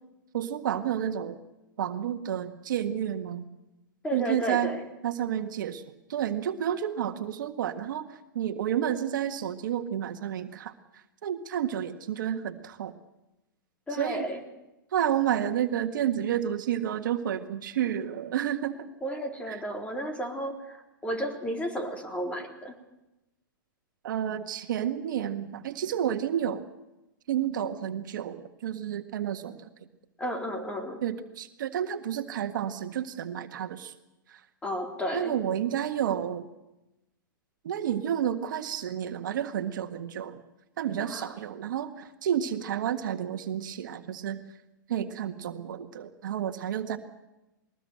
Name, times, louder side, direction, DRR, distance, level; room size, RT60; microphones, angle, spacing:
voice 1, 0.3-1.4 1.8-3.4 4.1-4.7 5.0-5.8 6.1-12.9 13.9-14.3 14.9-18.9 19.5-19.6 24.0-26.7 27.3-29.7 31.0-33.9 34.3-34.4 35.1-36.5 37.6-40.4 40.8-44.4 44.9-47.0, right 10 dB, 65° right, 7 dB, 1.8 m, -30 dB
voice 2, 4.0-4.9 13.9-14.4 19.0-22.7 30.2-31.0 34.6-35.4 41.0-41.3, equal, 10° left, 4 dB, 3.8 m, -33 dB
21.5 x 20.0 x 8.0 m, 0.96 s
hypercardioid pair, 120°, 11 cm